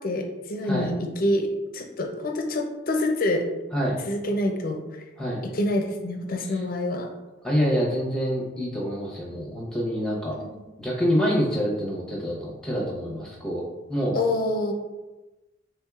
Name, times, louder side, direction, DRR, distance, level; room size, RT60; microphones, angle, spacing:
voice 1, 0.0-1.5 1.7-3.5 4.0-4.8 5.5-7.1 10.4-10.5 14.1-14.7, left 1 dB, 45° left, 4 dB, 0.5 m, -26 dB
voice 2, 7.4-10.4 10.8-13.6 13.9-14.2, equal, 5° left, -4 dB, 0.8 m, -26 dB
4.4 x 3.4 x 2.3 m, 1.1 s
head